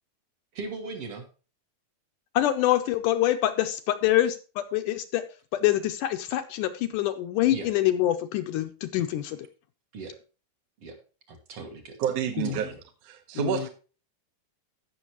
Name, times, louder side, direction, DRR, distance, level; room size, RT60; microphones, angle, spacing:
voice 1, 0.5-1.3 4.1-4.3 7.5-7.7 9.9-10.2 10.8-11.0 11.3-12.0 12.4-12.8, right 3 dB, 50° right, 5 dB, 2.0 m, -38 dB
voice 2, 2.3-4.3 4.7-5.2 5.5-9.4 12.4-12.5 13.4-13.7, left 13 dB, 80° left, 7 dB, 2.0 m, -25 dB
voice 3, 12.0-12.7 13.0-13.7, right 9 dB, 65° right, 5 dB, 1.6 m, -29 dB
16.0 x 6.2 x 3.0 m, 0.35 s
omnidirectional pair, 4.0 m